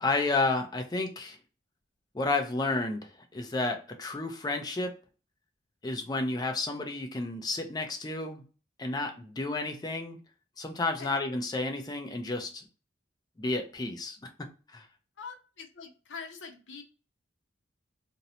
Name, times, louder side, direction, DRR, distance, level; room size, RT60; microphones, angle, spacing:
voice 1, 0.0-1.4 2.1-4.9 5.8-8.4 8.8-10.2 10.6-12.6 13.4-14.3 14.7-14.9, left 2 dB, 20° left, 4 dB, 0.4 m, -31 dB
voice 2, 15.2-16.8, left 5 dB, 70° left, 3 dB, 0.6 m, -44 dB
2.6 x 2.0 x 2.7 m, 0.36 s
head